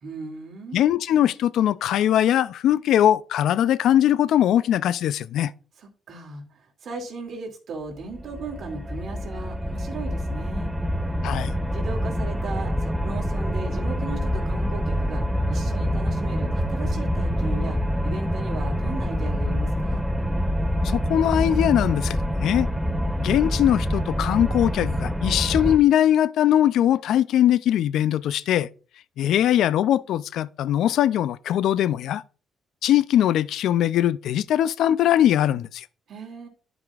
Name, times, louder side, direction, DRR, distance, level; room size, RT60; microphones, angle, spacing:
voice 1, 0.0-0.9 5.8-10.7 11.7-15.2 15.5-20.1 36.1-36.5, right 3 dB, 60° right, 2.3 m, -37 dB
voice 2, 0.7-5.5 11.2-11.5 20.8-22.7 23.2-28.7 29.2-32.2 32.8-35.9, left 11 dB, 80° left, 0.3 m, -21 dB
sound 1, 8.0-25.8, equal, 5° right, 0.6 m, -26 dB
11.0 x 4.9 x 2.3 m
cardioid pair, 90°, 0 cm